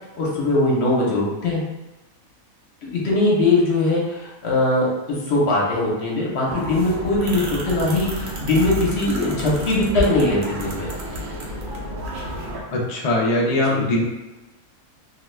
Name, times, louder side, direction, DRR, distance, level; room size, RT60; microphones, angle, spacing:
voice 1, 0.2-1.6 2.8-10.9 13.6-13.8, left 2 dB, 55° left, -4 dB, 1.0 m, -21 dB
sound 1, 6.5-12.6, equal, 55° right, 0.6 m, -30 dB
voice 2, 12.7-14.0, left 1 dB, 70° left, -2 dB, 0.3 m, -21 dB
2.7 x 2.3 x 3.2 m, 1.0 s
omnidirectional pair, 1.4 m